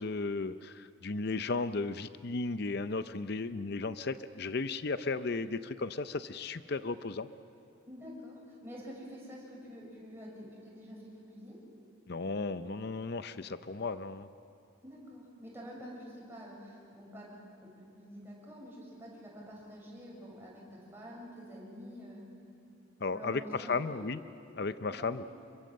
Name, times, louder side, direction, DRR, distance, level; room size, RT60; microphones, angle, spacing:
voice 1, 0.0-7.3 12.1-14.3 23.0-24.2 24.5-25.2, left 3 dB, 50° left, 12 dB, 0.6 m, -35 dB
voice 2, 7.8-11.6 14.8-22.2 23.1-24.1 24.9-25.3, equal, 10° right, -4 dB, 6.5 m, -48 dB
27.5 x 23.0 x 7.6 m, 2.5 s
head